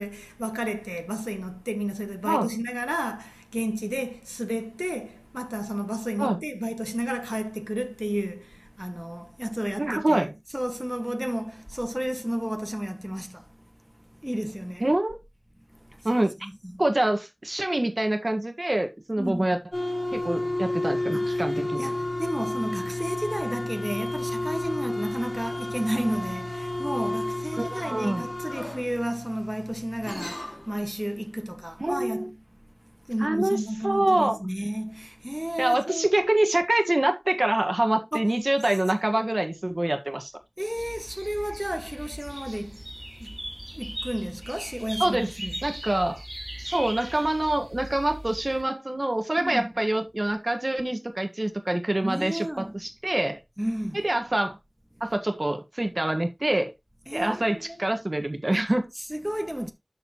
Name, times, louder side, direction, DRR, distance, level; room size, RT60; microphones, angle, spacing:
voice 1, 0.0-10.3 10.5-13.4 14.2-14.9 16.1-16.2 16.4-16.8 19.2-19.6 21.1-32.4 33.1-36.1 38.1-38.3 39.1-39.2 40.6-42.8 43.2-43.4 43.8-45.6 49.4-49.7 52.0-52.8 53.6-54.0 57.1-58.0 58.5-58.7 59.0-59.7, equal, 15° right, 1.8 m, -32 dB
voice 2, 9.8-10.3 14.8-15.2 16.0-16.3 16.8-19.6 20.1-21.9 27.5-28.2 31.8-32.3 33.2-33.6 33.8-34.4 35.6-40.3 45.0-45.3 45.6-46.2 46.6-53.4 53.9-54.6 55.0-56.7 57.1-58.9, right 1 dB, 55° right, 1.7 m, -25 dB
sound 1, 19.7-30.7, left 1 dB, 45° left, 4.2 m, -31 dB
sound 2, 40.8-48.6, right 1 dB, 30° right, 5.9 m, -39 dB
12.0 x 6.7 x 3.1 m
wide cardioid pair, 40°, 0 cm